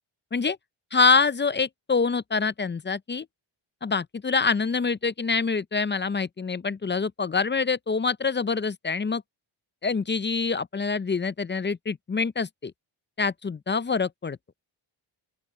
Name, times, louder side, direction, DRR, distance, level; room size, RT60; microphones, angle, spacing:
voice 1, 0.9-3.3 3.8-9.2 9.8-12.7 13.2-14.4, left 4 dB, 25° left, 0.4 m, -25 dB
open air
cardioid pair, 80°, 49 cm